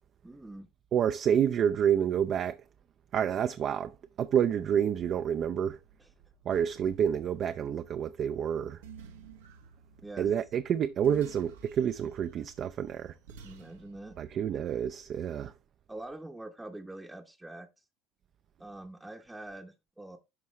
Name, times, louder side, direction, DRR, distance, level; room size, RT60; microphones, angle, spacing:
voice 1, 0.2-0.7 6.0-6.1 10.0-10.3 12.0-12.1 13.4-14.2 14.5-14.6 15.9-17.7 18.6-20.2, right 2 dB, 10° right, 0.8 m, -45 dB
voice 2, 0.9-2.6 3.1-5.8 6.5-8.8 10.2-13.1 14.2-15.5, right 8 dB, 50° right, 0.5 m, -28 dB
sound 1, 5.2-14.7, right 6 dB, 90° right, 1.0 m, -53 dB
11.0 x 3.7 x 3.1 m
supercardioid pair, 85°, 0 cm